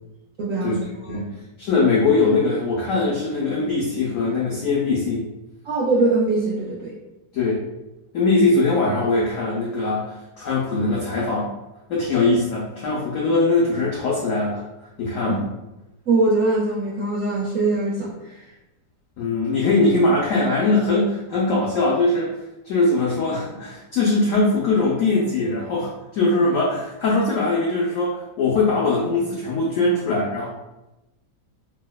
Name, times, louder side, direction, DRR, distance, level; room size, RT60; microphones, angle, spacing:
voice 1, 0.4-0.8 1.0-1.2 5.7-6.9 15.3-15.4 16.1-18.4, right 3 dB, 70° right, -5 dB, 0.7 m, -22 dB
voice 2, 1.6-5.3 7.3-7.6 8.1-11.5 11.9-14.6 15.0-15.4 19.2-22.3 22.6-30.5, left 3 dB, 80° left, -4 dB, 0.7 m, -21 dB
4.7 x 2.1 x 2.2 m, 1.0 s
omnidirectional pair, 2.0 m